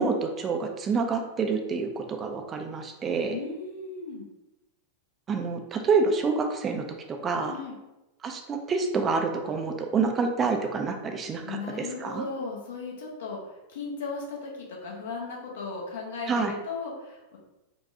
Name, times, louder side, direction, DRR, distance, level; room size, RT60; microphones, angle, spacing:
voice 1, 0.0-3.4 5.3-7.5 8.2-12.3 16.3-16.5, right 4 dB, 25° right, 4 dB, 0.4 m, -27 dB
voice 2, 3.3-4.3 7.5-7.8 11.4-17.4, left 4 dB, 60° left, -2 dB, 0.8 m, -36 dB
4.3 x 2.3 x 2.7 m, 0.98 s
figure-of-eight pair, 90°, 0 cm